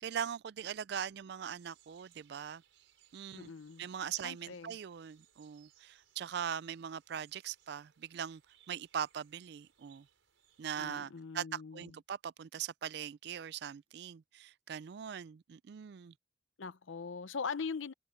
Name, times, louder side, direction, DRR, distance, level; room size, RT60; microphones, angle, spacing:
voice 1, 0.0-2.6 3.1-3.5 3.8-8.4 8.7-10.1 10.6-16.1, right 8 dB, 55° right, 0.3 m, -41 dB
sound 1, 1.4-10.9, right 11 dB, 80° right, 5.2 m, -68 dB
voice 2, 3.3-3.9 4.2-4.8 10.8-12.0 16.6-17.9, left 5 dB, 80° left, 0.7 m, -41 dB
head